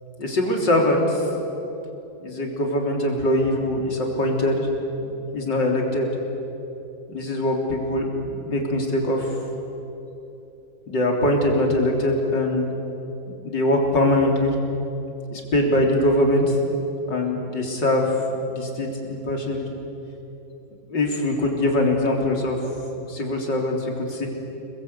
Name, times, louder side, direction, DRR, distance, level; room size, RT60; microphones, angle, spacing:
voice 1, 0.2-1.3 2.2-4.7 5.0-6.1 7.1-9.4 10.9-12.6 13.4-14.6 15.3-16.6 17.1-19.7 20.9-22.6 23.0-24.3, left 1 dB, 70° left, 0 dB, 4.3 m, -22 dB
29.5 x 21.5 x 8.4 m, 3.0 s
omnidirectional pair, 2.0 m